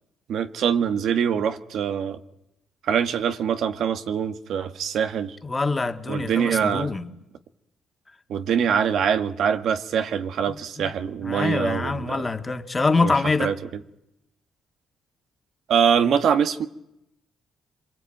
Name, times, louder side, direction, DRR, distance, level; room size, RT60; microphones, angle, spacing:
voice 1, 0.3-2.2 2.8-5.4 6.1-6.9 8.3-12.2 13.0-13.1 13.4-13.5 15.7-16.7, right 7 dB, 70° right, 1.5 m, -23 dB
voice 2, 5.4-7.1 10.8-10.9 11.2-13.5, left 3 dB, 25° left, 2.1 m, -24 dB
27.5 x 23.0 x 9.2 m
cardioid pair, 90°, 0 cm